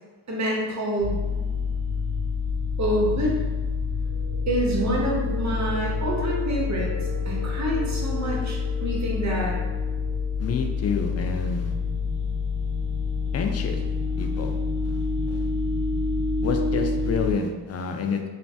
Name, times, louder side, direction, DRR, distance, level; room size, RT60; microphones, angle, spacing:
voice 1, 0.3-1.2 2.8-3.4 4.5-6.9 7.3-9.6, right 1 dB, 35° right, -3 dB, 0.9 m, -27 dB
sound 1, 1.0-17.3, left 4 dB, 70° right, 0.8 m, -27 dB
voice 2, 10.4-11.7 13.3-13.8 14.2-14.5 14.9-15.0 15.3-15.5 16.4-18.3, left 5 dB, 35° left, 4 dB, 0.4 m, -28 dB
3.0 x 2.1 x 2.7 m, 1.3 s
supercardioid pair, 60°, 49 cm